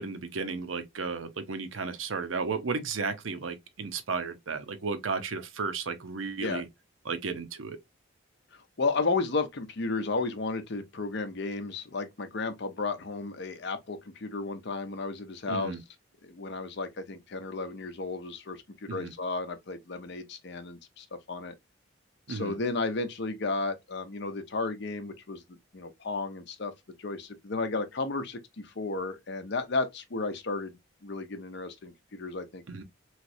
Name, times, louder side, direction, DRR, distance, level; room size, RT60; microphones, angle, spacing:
voice 1, 0.0-6.7 7.0-7.8 15.5-15.8 18.9-19.1 22.3-22.5 32.7-32.8, right 4 dB, 90° right, 0.7 m, -34 dB
voice 2, 8.5-15.7 16.2-21.5 22.3-26.7 27.0-32.6, left 3 dB, 60° left, 0.7 m, -33 dB
3.2 x 3.0 x 2.5 m
head